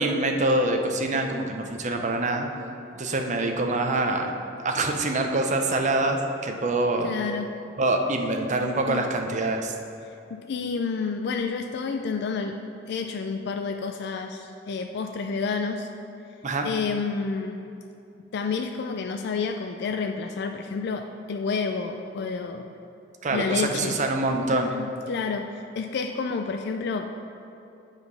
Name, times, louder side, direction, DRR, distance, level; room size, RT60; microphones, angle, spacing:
voice 1, 0.0-2.5 3.0-4.3 4.6-7.1 7.8-9.7 16.4-16.7 23.2-24.7, right 2 dB, 40° right, 3 dB, 0.7 m, -25 dB
voice 2, 7.0-7.5 8.9-9.1 10.3-12.6 12.9-15.9 16.6-17.6 18.3-22.7 23.3-24.0 24.7-27.2, left 5 dB, 60° left, 4 dB, 0.4 m, -29 dB
7.6 x 4.8 x 5.5 m, 2.7 s
head